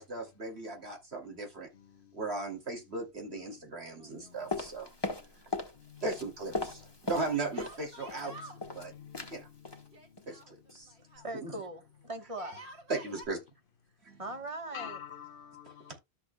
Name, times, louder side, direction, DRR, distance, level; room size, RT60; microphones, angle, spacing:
voice 1, 0.0-1.7 2.1-4.9 6.0-8.9 9.3-9.5 10.3-10.9 11.3-11.6 12.9-13.4 14.0-14.2 15.9-16.0, right 3 dB, 80° right, 3.1 m, -37 dB
Yell, 4.0-4.8 5.1-5.2 7.2-8.6 9.9-11.3 12.3-13.3, right 1 dB, 60° right, 2.3 m, -50 dB
sound 1, 4.5-5.8 6.0-7.8 8.1-8.9 9.1-9.4 9.7-9.9 10.2-10.4 10.7-10.8, left 2 dB, 25° left, 1.5 m, -37 dB
voice 2, 8.8-9.3 14.7-15.9, left 8 dB, 60° left, 1.1 m, -46 dB
voice 3, 11.2-12.6 14.2-15.0, right 2 dB, 30° right, 1.4 m, -40 dB
13.0 x 7.0 x 2.3 m
omnidirectional pair, 1.1 m